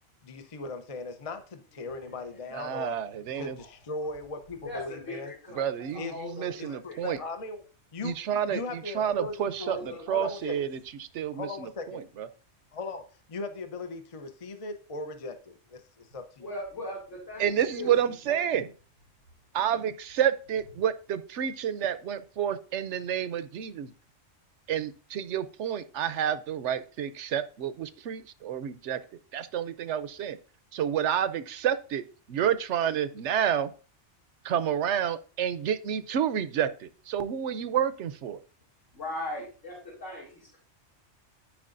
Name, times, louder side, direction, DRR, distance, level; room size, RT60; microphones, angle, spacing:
voice 1, 0.2-3.0 3.4-5.3 6.0-6.1 6.6-6.7 7.0-7.6 7.9-9.8 10.1-10.5 11.3-12.1 12.7-13.0 13.3-16.5, left 3 dB, 35° left, 8 dB, 0.7 m, -38 dB
voice 2, 2.5-3.6 5.5-7.2 8.0-12.3 17.4-18.7 19.5-23.9 24.7-29.0 29.3-30.4 30.7-33.7 34.4-38.4, right 9 dB, 75° right, 12 dB, 0.9 m, -29 dB
voice 3, 4.6-5.6 5.9-7.3 9.6-10.6 16.4-17.9 38.9-40.6, left 1 dB, 85° left, -6 dB, 2.7 m, -39 dB
13.0 x 4.8 x 2.5 m, 0.38 s
omnidirectional pair, 1.3 m